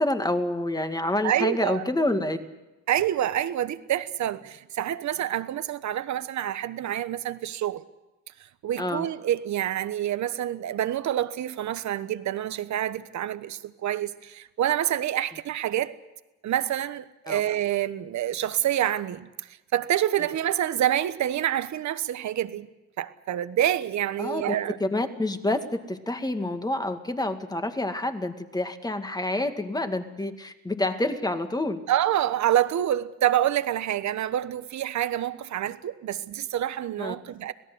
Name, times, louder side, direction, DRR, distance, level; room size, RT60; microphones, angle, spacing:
voice 1, 0.0-2.4 8.8-9.1 17.3-17.4 24.2-24.6 24.8-31.8 37.0-37.1, left 1 dB, 15° left, 2.1 m, -28 dB
voice 2, 1.2-1.8 2.9-7.8 8.6-15.9 16.4-19.3 19.7-22.7 23.0-24.8 31.9-37.5, right 12 dB, 70° right, 1.2 m, -27 dB
26.0 x 17.5 x 8.1 m
cardioid pair, 90°, 30 cm